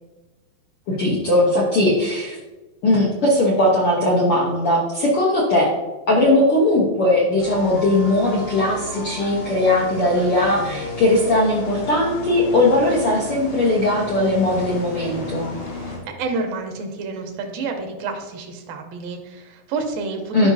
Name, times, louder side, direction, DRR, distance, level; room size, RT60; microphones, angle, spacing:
voice 1, 0.9-2.4 2.8-5.7 6.1-15.5 20.3-20.5, left 1 dB, 65° left, -5 dB, 1.4 m, -19 dB
sound 1, 7.4-16.0, left 2 dB, 90° left, 4.3 m, -33 dB
voice 2, 15.7-20.5, right 4 dB, 80° right, 4 dB, 2.7 m, -29 dB
12.5 x 5.3 x 2.7 m, 1.1 s
omnidirectional pair, 4.1 m